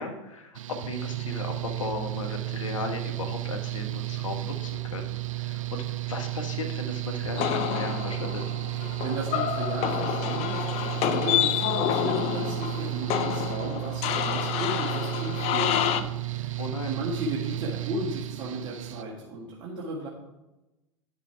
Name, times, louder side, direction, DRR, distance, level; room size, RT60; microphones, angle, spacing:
voice 1, 0.0-8.4 16.6-16.9, left 3 dB, 80° left, 4 dB, 1.3 m, -36 dB
Mechanical fan, 0.6-19.0, right 17 dB, 80° right, 0.4 m, -33 dB
sound 1, 7.4-16.0, left 11 dB, 40° left, 0.6 m, -28 dB
voice 2, 8.8-16.6 16.9-20.1, right 1 dB, 30° right, -5 dB, 1.7 m, -35 dB
9.9 x 6.8 x 3.5 m, 0.99 s
hypercardioid pair, 100°, 16 cm